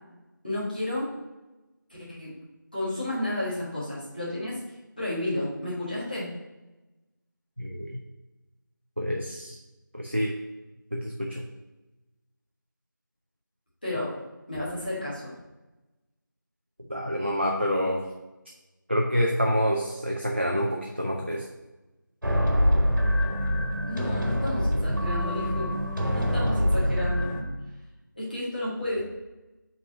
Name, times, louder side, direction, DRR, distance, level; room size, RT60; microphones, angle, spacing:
voice 1, 0.4-1.1 1.9-2.3 2.7-4.6 5.0-6.3 13.8-14.1 14.5-15.3 23.9-25.8 26.1-27.4 28.2-29.0, left 1 dB, 25° left, -8 dB, 1.5 m, -31 dB
voice 2, 7.6-8.0 9.0-9.6 9.9-10.3 10.9-11.4 16.9-18.0 18.9-21.4, equal, 35° right, 0 dB, 0.5 m, -27 dB
sound 1, 22.2-27.4, equal, 70° right, 1.6 m, -25 dB
5.5 x 4.0 x 5.5 m, 1.1 s
figure-of-eight pair, 175°, 11 cm